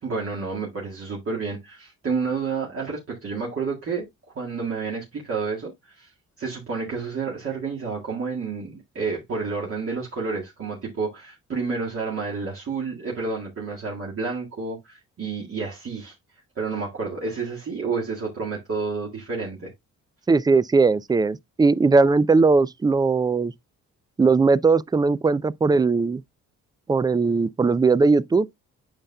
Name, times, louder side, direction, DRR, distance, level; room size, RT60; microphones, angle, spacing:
voice 1, 0.0-4.1 4.4-6.1 6.4-16.1 16.6-19.7, right 4 dB, 50° right, 1.9 m, -30 dB
voice 2, 20.3-23.5 24.2-26.2 26.9-28.5, right 4 dB, 15° right, 0.3 m, -19 dB
8.8 x 5.6 x 2.2 m
cardioid pair, 90°, 30 cm